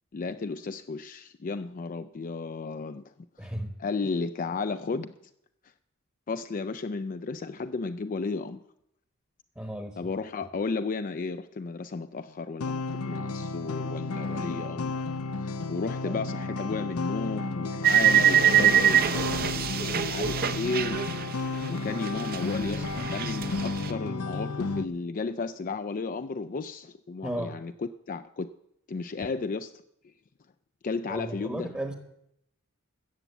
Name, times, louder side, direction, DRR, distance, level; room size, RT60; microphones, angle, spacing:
voice 1, 0.1-3.1 3.4-3.5 3.8-5.1 6.3-8.6 10.0-15.0 15.4-21.0 21.7-28.5 28.9-29.7 30.8-31.7, left 4 dB, 40° left, 9 dB, 0.4 m, -33 dB
voice 2, 3.4-3.7 9.6-9.9 16.1-16.2 27.2-27.6 31.1-31.9, right 1 dB, 10° right, 6 dB, 1.1 m, -34 dB
sound 1, 12.6-24.9, left 3 dB, 80° left, 0.7 m, -33 dB
sound 2, 17.8-21.8 22.0-23.9, right 9 dB, 45° right, 0.7 m, -24 dB
14.0 x 7.3 x 8.1 m, 0.79 s
head